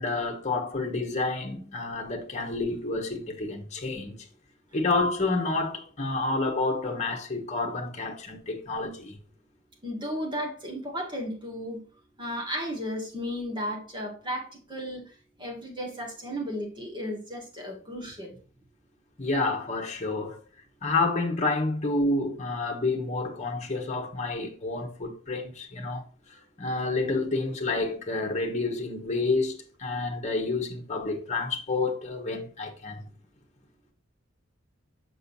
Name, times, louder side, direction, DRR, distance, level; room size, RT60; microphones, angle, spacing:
voice 1, 0.0-4.3 4.7-9.2 19.2-20.4 20.8-33.1, left 3 dB, 35° left, 1.2 m, -29 dB
voice 2, 9.8-11.8 12.2-15.0 15.4-18.4, equal, 25° right, 1.8 m, -34 dB
6.5 x 6.3 x 2.7 m
head